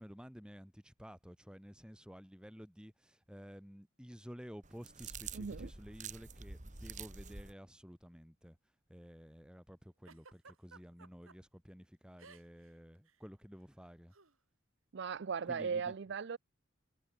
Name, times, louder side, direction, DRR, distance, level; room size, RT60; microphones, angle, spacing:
voice 1, 0.0-8.6 8.9-14.1 15.4-16.0, equal, 5° right, 5.1 m, -52 dB
sound 1, 4.6-7.5, right 5 dB, 35° right, 2.1 m, -47 dB
voice 2, 5.3-5.7 14.9-16.4, right 6 dB, 55° right, 0.5 m, -38 dB
Giggle, 10.1-11.4 12.2-12.7 13.0-13.2 14.1-14.3, right 4 dB, 80° right, 4.4 m, -57 dB
head